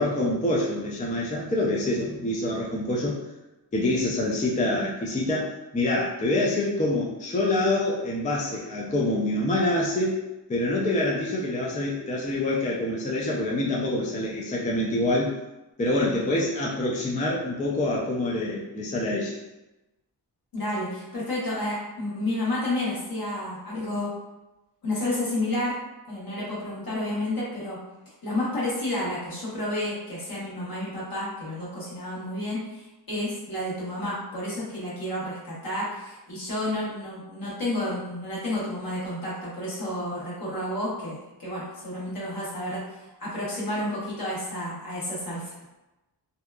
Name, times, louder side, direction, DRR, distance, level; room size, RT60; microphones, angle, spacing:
voice 1, 0.0-3.2 3.7-10.2 10.5-15.3 15.8-19.4, left 1 dB, 20° left, -4 dB, 0.3 m, -26 dB
voice 2, 20.5-24.1 24.8-25.8 26.1-27.8 28.2-45.5, left 1 dB, 55° left, -7 dB, 1.2 m, -31 dB
2.7 x 2.3 x 2.2 m, 1.0 s
wide cardioid pair, 110°, 43 cm